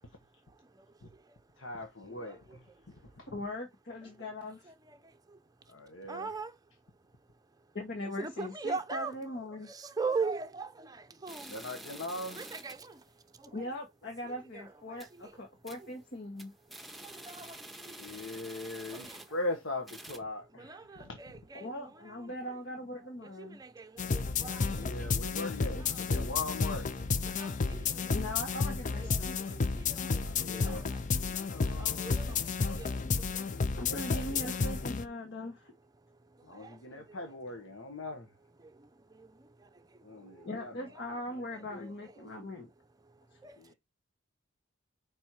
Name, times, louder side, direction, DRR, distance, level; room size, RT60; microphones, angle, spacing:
voice 1, 0.5-1.4 2.1-3.3 4.7-5.4 6.1-6.6 8.2-9.1 9.7-11.7 12.3-13.6 14.5-15.4 15.8-15.9 16.7-19.4 20.5-22.3 23.2-25.1 25.8-26.6 27.2-28.2 28.9-33.9 34.3-34.5 36.1-37.3 38.6-40.5 40.9-41.1 41.7-41.9 42.2-42.3 43.0-43.7, right 4 dB, 20° right, 0.6 m, -43 dB
voice 2, 1.6-2.6 3.2-3.3 5.7-6.3 11.5-12.4 18.0-21.2 24.6-26.8 27.2-27.3 30.2-30.9 31.2-33.1 33.5-34.6 36.4-38.3 40.0-40.7 41.7-41.9 43.6-43.7, left 2 dB, 70° left, 1.3 m, -41 dB
voice 3, 3.3-4.7 7.7-9.7 13.5-16.5 21.5-23.6 28.1-29.4 33.8-35.7 40.4-42.7, left 1 dB, 55° left, 1.5 m, -40 dB
sound 1, 11.3-12.9 13.3-13.4 13.7-13.8 14.3-14.5 14.8-15.2 15.7-16.0 16.3-19.5 19.8-20.2, right 1 dB, ahead, 1.0 m, -48 dB
sound 2, 24.0-35.0, left 4 dB, 40° left, 0.5 m, -32 dB
5.4 x 4.4 x 4.7 m
head